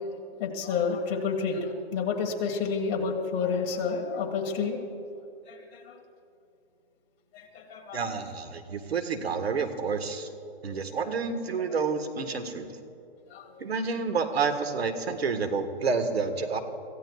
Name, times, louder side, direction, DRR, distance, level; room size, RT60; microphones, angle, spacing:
voice 1, 0.4-4.8 5.5-6.0 7.3-8.1 11.0-11.1 13.3-13.4, left 5 dB, 25° left, 1 dB, 1.8 m, -30 dB
voice 2, 7.9-10.3 10.6-12.7 13.6-16.6, right 5 dB, 85° right, 7 dB, 1.5 m, -29 dB
25.5 x 15.5 x 2.4 m, 2.7 s
hypercardioid pair, 150°, 30 cm